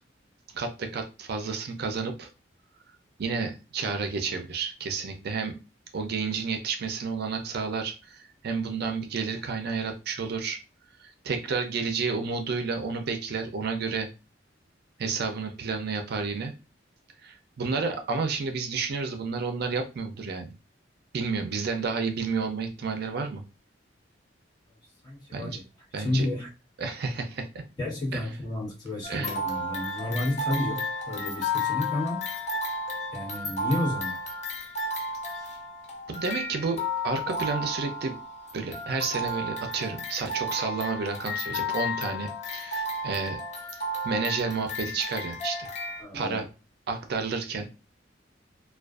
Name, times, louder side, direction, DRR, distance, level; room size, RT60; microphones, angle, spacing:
voice 1, 0.5-2.3 3.2-5.6 5.9-10.6 11.0-14.1 15.0-16.5 17.2-20.5 21.1-23.4 25.3-25.6 25.9-26.3 26.8-27.6 28.1-28.3 29.1-29.4 36.1-38.1 38.5-43.4 44.0-45.7 46.1-46.5 46.9-47.7, right 4 dB, 60° right, 0.4 m, -31 dB
voice 2, 25.0-25.6 26.0-26.5 27.8-32.3 33.1-34.2 46.0-46.4, left 1 dB, 20° left, 1.1 m, -31 dB
sound 1, 29.0-46.0, left 2 dB, 40° left, 0.5 m, -33 dB
2.4 x 2.2 x 2.3 m
head